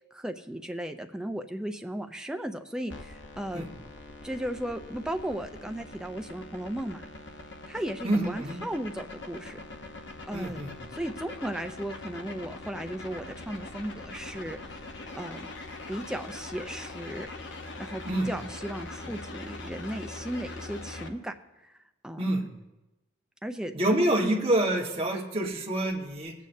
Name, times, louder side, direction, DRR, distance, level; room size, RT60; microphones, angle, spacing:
voice 1, 0.1-3.7 4.2-7.1 7.7-9.6 10.3-10.6 10.9-14.6 15.1-15.5 15.9-17.3 17.8-21.3 21.6-21.7 22.0-22.4 23.4-23.7 24.2-24.4, right 1 dB, 5° right, 6 dB, 0.5 m, -35 dB
sound 1, 2.9-21.1, left 2 dB, 65° left, 0.9 m, -42 dB
voice 2, 8.0-8.6 10.3-10.8 18.1-18.3 22.2-22.5 23.7-26.3, right 1 dB, 30° right, -2 dB, 1.5 m, -27 dB
19.0 x 8.4 x 2.7 m, 0.99 s
head